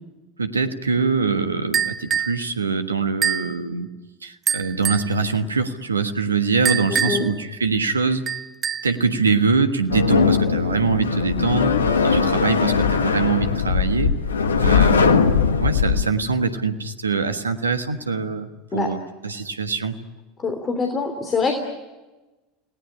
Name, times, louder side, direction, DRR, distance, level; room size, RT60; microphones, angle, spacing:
voice 1, 0.4-3.9 4.2-8.2 8.8-11.7 12.0-14.2 14.6-15.3 15.6-20.0, right 4 dB, 80° right, 8 dB, 1.5 m, -23 dB
sound 1, 1.7-2.4 3.2-3.5 4.5-5.1 6.6-7.4 8.3-9.0, right 8 dB, 30° right, 0.8 m, -24 dB
voice 2, 6.9-7.3 18.7-18.9 20.4-21.6, left 4 dB, 25° left, 5 dB, 3.2 m, -24 dB
sound 2, 9.9-16.1, left 6 dB, 75° left, 1.4 m, -20 dB
30.0 x 19.0 x 9.9 m, 1.2 s
figure-of-eight pair, 75°, 0 cm